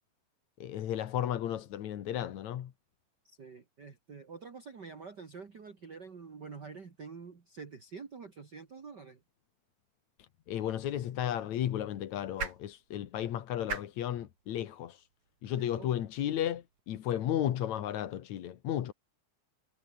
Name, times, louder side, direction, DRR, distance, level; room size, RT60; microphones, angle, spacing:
voice 1, 0.6-2.7 10.5-15.1 15.4-18.9, left 11 dB, 75° left, 2.7 m, -34 dB
voice 2, 3.2-9.2 15.6-16.0, right 5 dB, 40° right, 2.6 m, -47 dB
sound 1, 10.6-16.8, right 6 dB, 65° right, 4.2 m, -46 dB
omnidirectional pair, 3.3 m